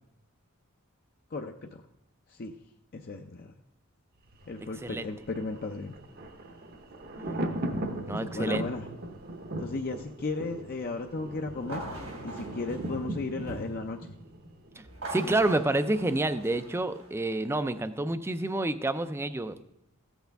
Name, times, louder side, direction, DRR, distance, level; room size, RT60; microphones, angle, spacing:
voice 1, 1.3-1.8 2.3-2.5 2.9-3.5 4.5-6.0 8.1-8.9 9.6-11.8 12.2-14.2 15.2-15.4, left 3 dB, 45° left, 3 dB, 0.5 m, -35 dB
Thunder, 4.3-15.2 15.5-15.6, right 1 dB, 45° right, 0.8 m, -38 dB
voice 2, 8.1-8.6 15.1-19.6, right 2 dB, 10° right, 12 dB, 0.3 m, -28 dB
sound 1, 11.6-13.8 14.8-17.4, right 2 dB, 85° right, 2.7 m, -42 dB
14.5 x 8.1 x 3.4 m, 0.85 s
head